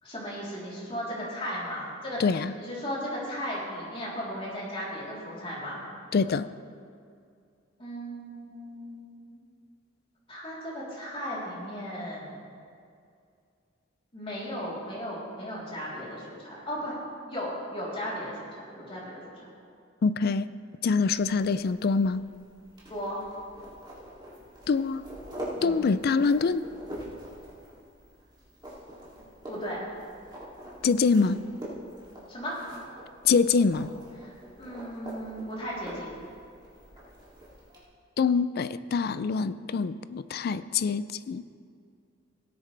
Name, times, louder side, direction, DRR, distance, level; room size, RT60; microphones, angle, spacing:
voice 1, 0.0-5.8 7.8-9.4 10.3-12.4 14.1-16.9 17.3-18.4 18.7-19.5 22.9-23.2 25.6-25.8 29.5-29.8 32.3-32.6 34.2-34.3 34.6-36.1, equal, 30° left, -7 dB, 3.5 m, -36 dB
voice 2, 2.2-2.5 6.1-6.5 20.0-20.5 20.8-22.2 24.7-25.0 25.6-26.6 30.8-31.4 33.2-33.9 38.2-41.4, left 5 dB, 55° left, 15 dB, 0.4 m, -25 dB
sound 1, 21.1-37.8, equal, 25° right, 2.7 m, -44 dB
17.5 x 9.7 x 3.3 m, 2.3 s
head